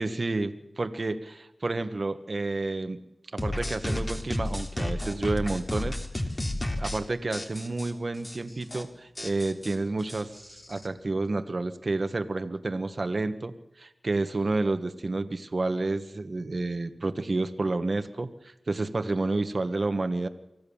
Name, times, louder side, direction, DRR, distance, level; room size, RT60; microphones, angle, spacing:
voice 1, 0.0-3.0 3.3-6.0 6.8-20.3, right 2 dB, 55° right, 9 dB, 1.5 m, -30 dB
sound 1, 3.4-7.0 7.3-7.9 8.2-8.4 8.6-8.8 9.2-10.9, left 1 dB, 30° left, 3.3 m, -32 dB
24.5 x 15.0 x 7.3 m, 0.90 s
cardioid pair, 45°, 0 cm